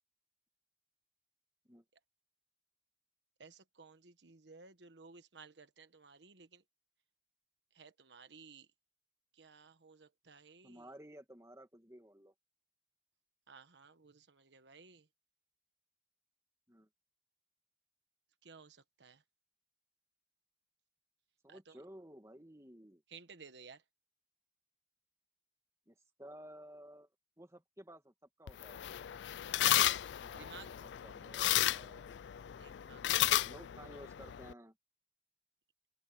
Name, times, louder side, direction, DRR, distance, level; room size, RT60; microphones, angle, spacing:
voice 1, 3.4-6.6 7.7-8.7 9.3-10.9 13.5-15.1 18.4-19.2 21.5-21.8 23.1-23.8 30.3-30.7 32.6-33.4, right 5 dB, 85° right, 1.3 m, -57 dB
voice 2, 10.6-12.3 16.7-16.9 21.4-23.0 25.9-27.1 27.4-29.0 30.2-32.2 33.3-34.8, right 1 dB, 15° right, 2.3 m, -55 dB
sound 1, 28.5-34.5, left 12 dB, 90° left, 0.4 m, -34 dB
head